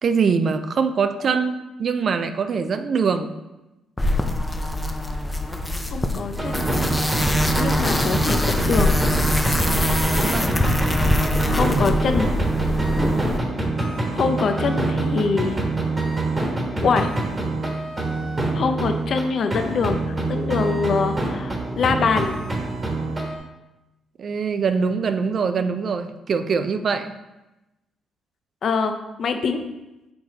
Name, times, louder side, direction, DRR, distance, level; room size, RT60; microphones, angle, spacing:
voice 1, 0.0-3.3 10.2-10.7 24.2-27.1, right 5 dB, 50° right, 10 dB, 0.5 m, -23 dB
sound 1, 4.0-13.4, left 1 dB, 15° left, 0.6 m, -23 dB
voice 2, 5.9-6.7 7.6-9.0 11.5-12.3 14.1-15.6 16.8-17.1 18.5-20.0 20.3-22.4 28.6-28.9 29.2-29.6, left 5 dB, 55° left, 7 dB, 0.6 m, -23 dB
sound 2, 6.4-19.3 19.5-23.4, right 2 dB, 25° right, 1.3 m, -25 dB
6.8 x 4.0 x 4.0 m, 1.0 s
cardioid pair, 90°, 0 cm